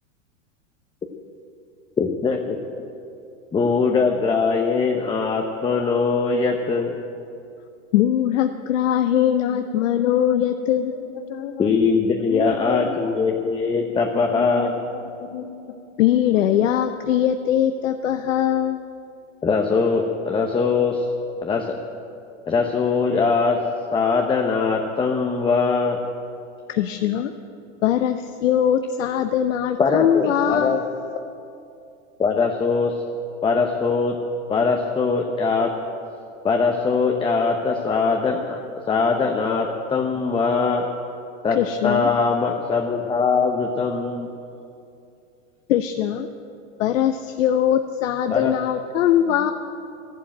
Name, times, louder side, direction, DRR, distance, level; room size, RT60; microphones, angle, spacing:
voice 1, 2.0-2.9 3.5-7.0 11.6-14.7 19.4-21.1 21.4-21.7 22.5-23.6 23.9-26.0 29.8-30.8 32.2-32.9 33.4-34.2 34.5-35.7 36.4-38.6 38.9-40.9 41.4-41.6 41.8-44.3 48.3-48.5, left 4 dB, 15° left, 3 dB, 0.8 m, -21 dB
voice 2, 7.9-11.0 16.0-18.8 26.7-27.3 27.8-30.8 41.5-42.1 45.7-46.3 46.8-49.5, left 10 dB, 75° left, 7 dB, 0.8 m, -21 dB
voice 3, 10.9-11.7 12.3-13.2 14.1-14.7 15.2-15.8, left 9 dB, 55° left, 6 dB, 1.6 m, -32 dB
12.5 x 11.5 x 8.8 m, 2.6 s
hypercardioid pair, 120°, 38 cm